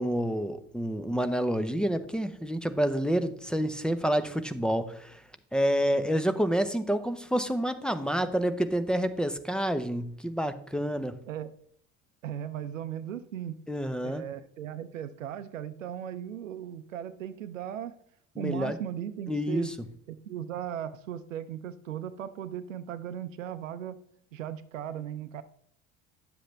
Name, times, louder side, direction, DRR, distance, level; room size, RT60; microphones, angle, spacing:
voice 1, 0.0-5.2 5.5-11.2 13.7-14.2 18.4-18.8 19.3-19.7, equal, ahead, 10 dB, 0.8 m, -28 dB
voice 2, 12.2-13.6 14.0-17.9 18.4-19.8 20.1-24.0 24.3-25.4, right 10 dB, 90° right, 11 dB, 0.6 m, -37 dB
10.5 x 7.6 x 3.3 m, 0.65 s
hypercardioid pair, 70°, 38 cm